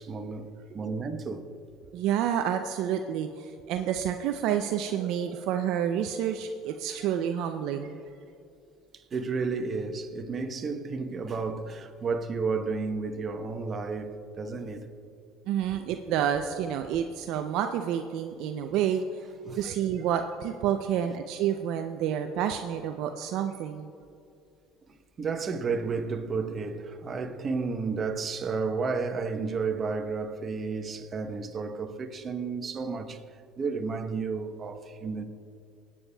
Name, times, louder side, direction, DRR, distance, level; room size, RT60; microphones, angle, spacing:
voice 1, 0.0-1.5 6.9-7.0 8.9-14.9 15.7-15.8 19.4-19.7 24.9-33.2 33.6-35.2, right 4 dB, 35° right, 0.9 m, -32 dB
voice 2, 1.9-8.0 15.5-19.0 19.6-23.9, right 9 dB, 70° right, 0.4 m, -29 dB
23.5 x 8.5 x 2.2 m
supercardioid pair, 80°, 0 cm